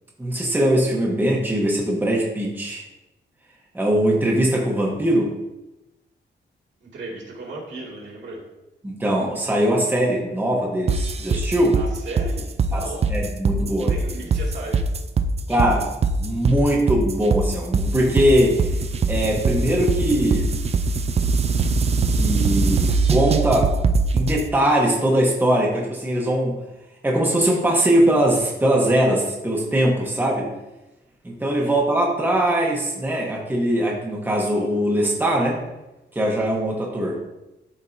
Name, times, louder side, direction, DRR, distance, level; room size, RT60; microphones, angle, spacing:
voice 1, 0.2-2.8 3.7-5.3 8.8-11.8 12.7-12.8 13.1-13.9 15.5-15.8 16.2-18.6 19.1-20.5 22.1-23.7 24.1-26.6 27.0-30.5 31.2-35.6 36.1-37.2, right 1 dB, 10° right, -2 dB, 1.0 m, -21 dB
voice 2, 6.8-8.4 11.7-13.0 13.8-14.9 31.5-31.9, right 2 dB, 75° right, -3 dB, 2.2 m, -36 dB
sound 1, 10.9-24.4, right 4 dB, 35° right, 0.4 m, -22 dB
12.0 x 4.3 x 2.7 m, 0.99 s
wide cardioid pair, 175°, 19 cm